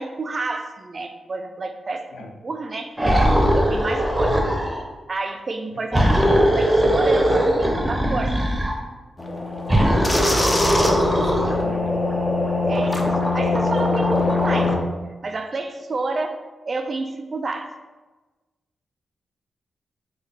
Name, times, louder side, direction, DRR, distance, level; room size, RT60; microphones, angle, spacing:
voice 1, 0.0-2.9 3.5-4.4 5.1-8.3 12.7-14.7 15.2-16.4 16.7-17.7, right 3 dB, 50° right, 6 dB, 0.4 m, -29 dB
sound 1, 3.0-4.8 5.9-8.8 9.7-11.7, equal, 15° right, 0.7 m, -19 dB
sound 2, 9.2-14.8, left 3 dB, 25° left, 0.5 m, -23 dB
voice 2, 9.7-10.1 10.9-12.0, left 2 dB, 80° left, 2 dB, 0.4 m, -39 dB
3.7 x 2.3 x 3.2 m, 1.2 s
cardioid pair, 55°, 0 cm